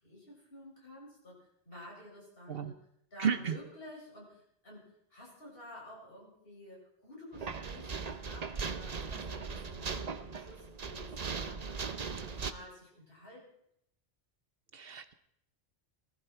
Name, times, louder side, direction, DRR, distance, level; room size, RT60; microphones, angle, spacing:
voice 1, 0.0-2.8 3.1-13.4, left 1 dB, 60° left, -3 dB, 7.1 m, -51 dB
voice 2, 3.2-3.6 14.7-15.1, right 7 dB, 65° right, 11 dB, 1.1 m, -32 dB
sound 1, 7.3-12.5, right 5 dB, 40° right, 0.9 m, -39 dB
19.5 x 14.0 x 4.5 m, 0.71 s
omnidirectional pair, 1.1 m